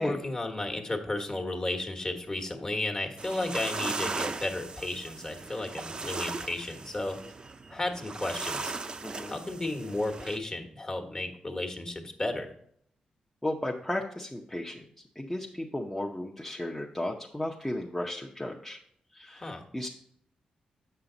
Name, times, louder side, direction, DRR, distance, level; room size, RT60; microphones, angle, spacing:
voice 1, 0.0-7.2 7.7-8.7 9.3-12.5 19.4-19.6, left 2 dB, 30° left, 3 dB, 1.4 m, -33 dB
sound 1, 3.2-10.4, right 3 dB, 35° right, 0.5 m, -38 dB
voice 2, 9.0-9.3 13.4-14.8 15.2-18.8 19.1-19.9, left 1 dB, 10° left, -1 dB, 0.7 m, -34 dB
8.1 x 5.6 x 3.8 m, 0.66 s
cardioid pair, 95°, 2 cm